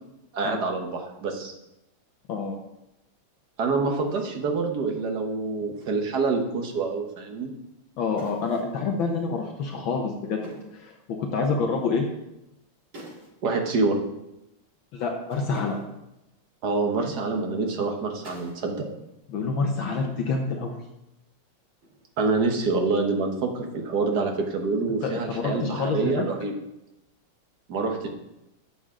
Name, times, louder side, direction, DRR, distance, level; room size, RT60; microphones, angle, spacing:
voice 1, 0.3-1.5 3.6-7.5 13.4-14.0 16.6-18.9 22.2-26.5 27.7-28.1, right 4 dB, 55° right, 3 dB, 1.6 m, -26 dB
sound 1, 4.1-4.3 5.8-6.1 8.2-8.8 10.4-10.9 12.9-13.4 13.7-13.8 15.3-16.1 18.2-18.7 19.0-19.5 21.8-22.3, right 1 dB, 75° right, 5.3 m, -47 dB
voice 2, 8.0-10.4 10.7-10.9 11.2-12.1 14.9-15.8 19.3-20.8 25.0-26.2, left 4 dB, 65° left, 2 dB, 1.6 m, -27 dB
12.5 x 7.0 x 3.7 m, 0.89 s
omnidirectional pair, 2.4 m